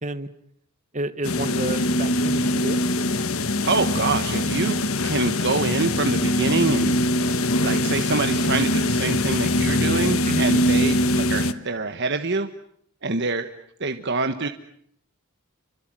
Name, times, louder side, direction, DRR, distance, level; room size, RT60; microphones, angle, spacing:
voice 1, 0.9-2.8 10.2-10.4, right 2 dB, 30° right, 10 dB, 1.4 m, -30 dB
sound 1, 1.2-11.5, left 1 dB, 70° left, 1.4 m, -22 dB
voice 2, 3.6-4.8 5.0-12.5 13.0-13.5 13.8-14.5, right 3 dB, 50° right, 6 dB, 1.4 m, -26 dB
29.5 x 24.5 x 7.7 m, 0.69 s
head